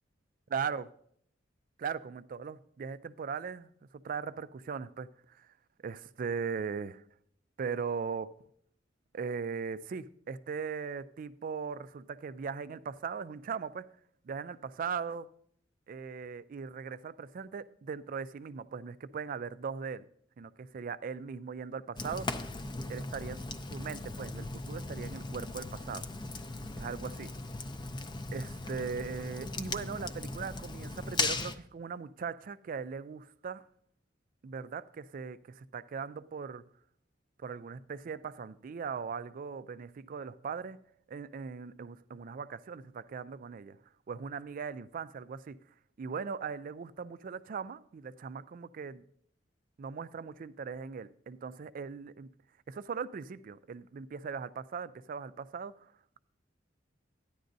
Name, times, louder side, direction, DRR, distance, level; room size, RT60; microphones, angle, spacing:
voice 1, 0.5-0.9 1.8-5.5 5.8-7.0 7.6-8.4 9.1-13.9 14.2-15.3 15.9-20.1 20.4-22.4 22.9-23.4 23.7-26.1 26.8-27.3 28.3-33.7 34.4-36.7 37.4-40.8 41.1-43.8 44.1-45.6 46.0-49.0 49.8-52.3 52.7-55.9, right 6 dB, 45° right, 0.3 m, -39 dB
Fire, 22.0-31.6, left 3 dB, 25° left, 0.4 m, -38 dB
13.0 x 10.0 x 2.6 m
head